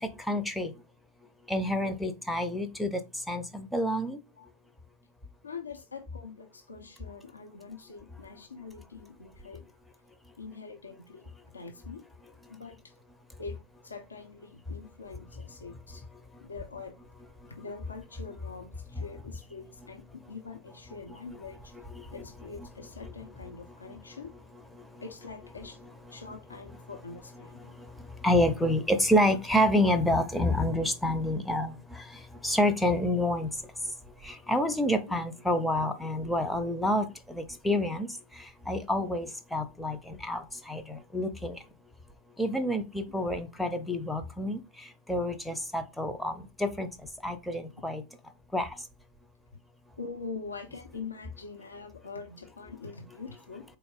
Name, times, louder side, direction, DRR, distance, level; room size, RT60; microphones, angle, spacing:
voice 1, 0.3-0.7 1.5-3.0 3.3-4.2 21.9-22.0 28.2-32.0 32.4-33.5 34.2-38.1 38.4-41.6 42.4-44.6 45.1-46.9 47.2-48.0 48.5-48.7, left 1 dB, 5° left, 0.6 m, -28 dB
voice 2, 5.4-9.6 10.4-11.3 11.5-12.0 12.5-12.9 13.4-16.0 16.4-16.9 17.5-21.7 22.1-24.3 25.0-25.8 26.1-27.8 35.1-35.2 50.0-53.6, left 4 dB, 75° left, 0.8 m, -44 dB
4.1 x 3.5 x 2.4 m
figure-of-eight pair, 90°, 0 cm